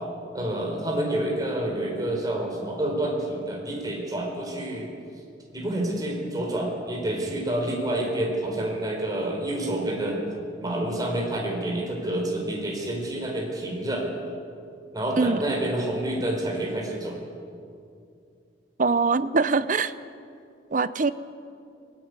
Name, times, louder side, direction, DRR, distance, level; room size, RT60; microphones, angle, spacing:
voice 1, 0.3-4.9 5.5-10.2 10.6-14.0 14.9-17.2, right 1 dB, 20° right, -1 dB, 4.4 m, -28 dB
voice 2, 18.8-19.9 20.7-21.1, right 4 dB, 45° right, 14 dB, 0.7 m, -22 dB
21.5 x 16.5 x 9.7 m, 2.4 s
head